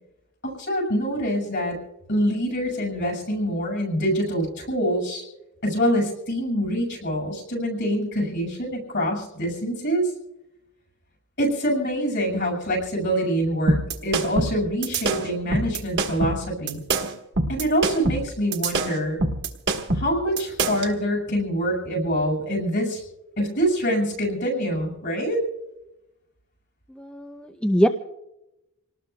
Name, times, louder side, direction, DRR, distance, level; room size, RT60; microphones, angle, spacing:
voice 1, 0.4-1.8 2.1-5.2 5.6-10.1 11.4-16.8 17.5-19.2 19.9-23.0 23.4-25.4, equal, 55° left, 0 dB, 6.7 m, -25 dB
sound 1, 13.7-20.9, right 2 dB, 55° right, 1.4 m, -25 dB
voice 2, 27.0-27.9, equal, 5° left, 6 dB, 0.5 m, -22 dB
28.5 x 19.0 x 2.3 m, 0.90 s
head